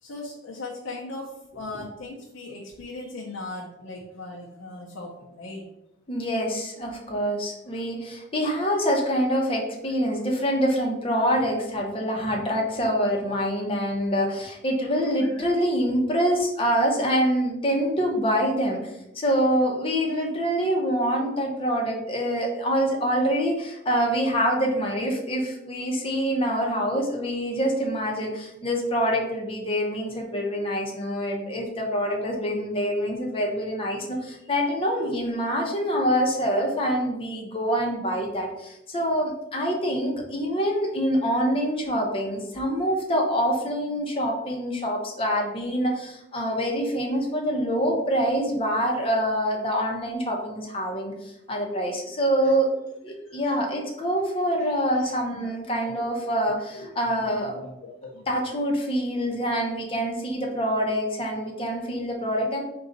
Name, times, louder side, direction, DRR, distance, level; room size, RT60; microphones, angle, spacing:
voice 1, 0.0-5.7 15.2-15.5 52.4-52.5 53.3-53.6 55.0-55.5 55.8-56.2 56.7-58.3, left 2 dB, 80° left, -2 dB, 0.6 m, -39 dB
voice 2, 6.1-18.8 19.1-51.1 51.5-52.7 53.0-57.6 58.3-62.6, equal, 25° left, 0 dB, 0.7 m, -25 dB
3.8 x 2.3 x 3.9 m, 0.86 s
head